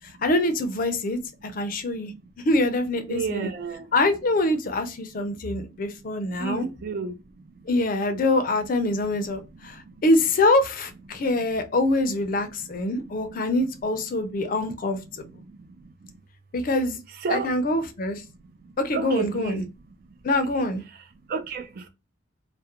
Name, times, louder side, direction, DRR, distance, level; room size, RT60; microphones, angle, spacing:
voice 1, 0.2-2.1 2.4-3.5 3.9-6.7 7.7-15.3 16.5-17.0 17.3-18.2 18.8-19.6 20.2-20.8, left 2 dB, 45° left, 0.4 m, -24 dB
voice 2, 3.1-3.8 6.4-7.1 17.2-17.5 18.9-19.7 21.3-21.6, right 5 dB, 50° right, 0.4 m, -30 dB
2.4 x 2.1 x 2.8 m
head